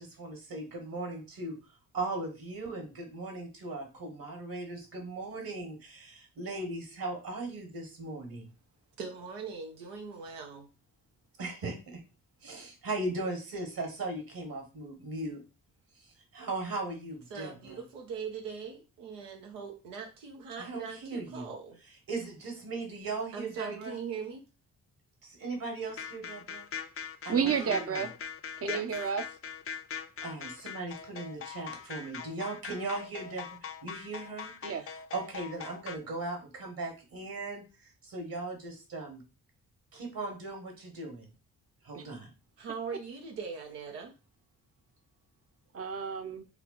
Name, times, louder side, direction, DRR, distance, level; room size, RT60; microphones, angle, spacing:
voice 1, 0.0-1.6 1.9-8.5 11.4-12.0 12.4-15.4 16.3-17.8 20.6-21.5 22.1-24.0 25.2-26.7 27.2-28.0 30.2-34.5 35.1-37.6 38.0-39.2 39.9-41.3 41.8-42.3, right 2 dB, 60° right, 3 dB, 1.6 m, -38 dB
voice 2, 9.0-10.7 17.3-21.8 23.3-24.5 27.4-27.8 28.6-28.8 42.6-44.1, right 5 dB, 85° right, 2 dB, 0.9 m, -41 dB
sound 1, 25.9-36.0, left 7 dB, 35° left, 0.5 m, -41 dB
voice 3, 27.3-28.1 28.6-29.2 34.6-34.8 41.9-42.0 45.7-46.5, right 6 dB, 35° right, 9 dB, 0.7 m, -31 dB
3.4 x 2.3 x 3.8 m, 0.30 s
hypercardioid pair, 40°, 39 cm